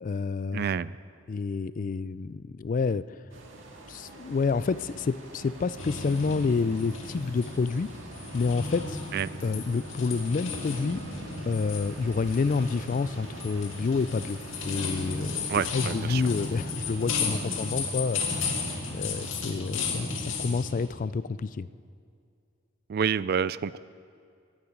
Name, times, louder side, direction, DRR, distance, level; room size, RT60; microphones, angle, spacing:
voice 1, 0.0-0.7 1.3-3.0 3.9-7.9 8.3-9.0 9.4-11.0 11.5-14.4 14.6-18.2 18.9-21.7, left 4 dB, 40° left, 16 dB, 0.3 m, -28 dB
voice 2, 0.5-0.9 9.1-9.3 15.5-16.2 22.9-23.8, right 7 dB, 50° right, 18 dB, 0.3 m, -28 dB
sound 1, 3.3-19.4, right 1 dB, 65° right, 1.9 m, -46 dB
sound 2, 5.8-20.9, left 4 dB, 70° left, 2.1 m, -34 dB
13.5 x 8.8 x 9.4 m, 2.3 s
head